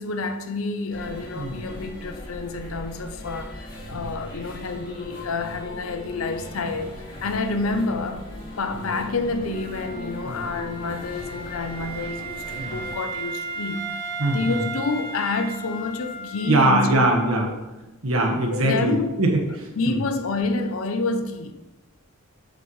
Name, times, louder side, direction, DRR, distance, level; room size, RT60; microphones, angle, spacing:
voice 1, 0.0-8.3 8.6-17.1 17.5-17.6 18.5-19.2 19.8-21.6, left 3 dB, 75° left, 0.6 m, -28 dB
sound 1, 0.9-12.9, equal, 45° left, 2.1 m, -39 dB
Wind instrument woodwind instrument, 9.5-17.2, right 3 dB, 55° right, 2.5 m, -36 dB
voice 2, 14.2-14.6 16.5-17.5 18.0-20.0, right 1 dB, 85° right, 1.4 m, -22 dB
7.8 x 6.6 x 3.2 m
head